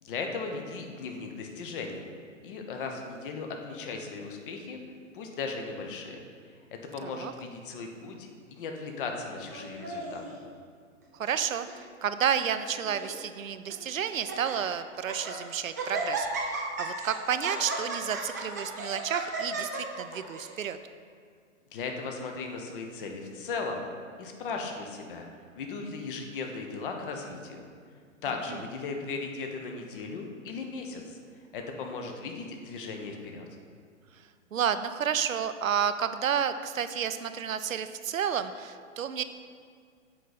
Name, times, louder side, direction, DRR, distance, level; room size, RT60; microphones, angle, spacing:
voice 1, 0.0-2.1 2.4-4.8 5.1-6.2 6.9-10.4 21.7-23.9 24.2-25.3 25.5-27.7 28.2-31.2 31.5-33.5, left 4 dB, 40° left, 3 dB, 0.9 m, -37 dB
voice 2, 7.0-7.3 11.2-20.8 28.5-28.6 34.5-39.2, right 8 dB, 75° right, 11 dB, 0.5 m, -31 dB
Laughter, 9.5-10.3 11.0-11.4 11.7-11.8 12.5-13.1 13.7-13.8 14.1-14.5 14.9-15.4 15.8-20.6, right 3 dB, 15° right, 0.3 m, -35 dB
7.6 x 5.0 x 4.1 m, 2.1 s
figure-of-eight pair, 115°, 40 cm